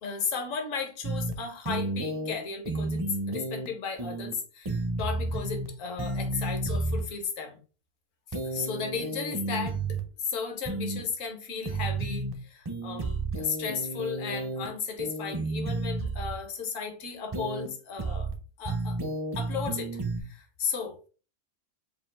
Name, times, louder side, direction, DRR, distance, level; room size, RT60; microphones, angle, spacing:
voice 1, 0.0-7.6 8.3-18.3 18.6-19.0 19.3-21.0, left 5 dB, 70° left, 1.3 m, -35 dB
sound 1, 1.0-1.3 1.6-2.3 2.6-3.7 4.0-4.3 4.6-5.7 6.0-7.0 8.3-10.0 10.6-11.0 11.6-12.3 12.6-14.7 15.0-16.3 17.3-17.7 18.0-18.3 18.6-20.2, right 2 dB, 35° right, 0.4 m, -32 dB
3.7 x 2.5 x 4.4 m
omnidirectional pair, 1.5 m